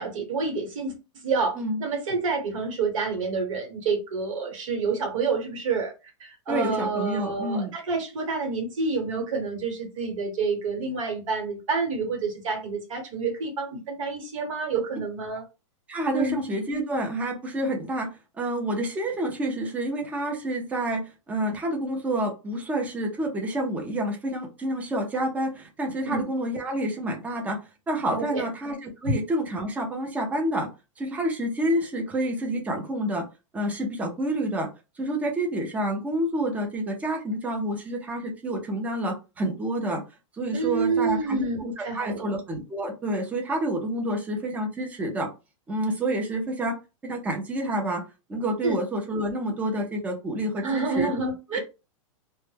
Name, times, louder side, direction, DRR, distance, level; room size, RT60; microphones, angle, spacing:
voice 1, 0.0-5.9 6.2-15.4 16.1-16.4 26.0-26.2 28.1-28.4 29.0-29.1 40.5-42.3 48.6-48.8 50.6-51.6, right 4 dB, 75° right, 1.1 m, -28 dB
voice 2, 6.5-7.7 15.9-18.1 18.4-27.6 27.9-30.7 31.0-33.3 33.5-34.7 35.0-40.0 40.3-45.3 45.7-46.8 47.0-48.0 48.3-51.1 51.5-51.6, right 1 dB, 10° right, 0.5 m, -28 dB
2.1 x 2.1 x 3.2 m
supercardioid pair, 160°, 17 cm